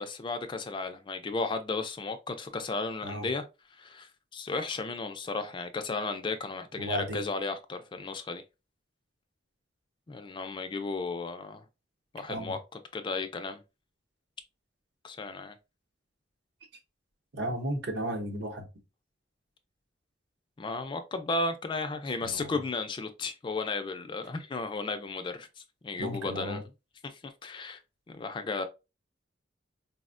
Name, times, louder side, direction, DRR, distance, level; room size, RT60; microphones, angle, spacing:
voice 1, 0.0-3.5 3.8-8.4 10.1-11.6 12.1-12.6 12.9-13.6 15.0-15.6 20.6-26.6 27.0-27.8 28.1-28.6, left 3 dB, 25° left, 0.3 m, -34 dB
voice 2, 6.8-7.2 12.3-12.5 17.3-18.7 22.2-22.6 26.0-26.6, right 1 dB, 60° right, 0.7 m, -34 dB
4.1 x 2.1 x 2.4 m
head